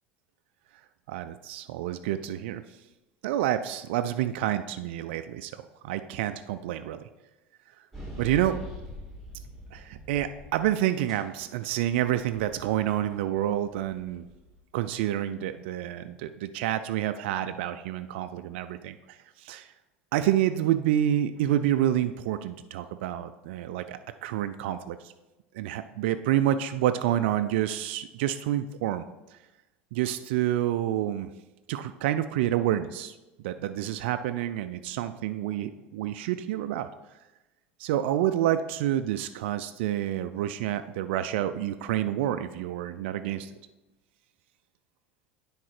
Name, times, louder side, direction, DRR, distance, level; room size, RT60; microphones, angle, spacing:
voice 1, 1.1-2.6 3.2-7.0 8.2-8.6 9.7-14.3 14.7-19.7 20.1-25.1 25.5-29.0 29.9-31.3 31.7-33.1 33.4-36.9 37.8-43.5, right 12 dB, 70° right, 9 dB, 0.4 m, -28 dB
sound 1, 7.9-10.8 11.1-14.6, equal, 5° left, 2.5 m, -44 dB
9.9 x 3.9 x 4.4 m, 1.1 s
hypercardioid pair, 75°, 6 cm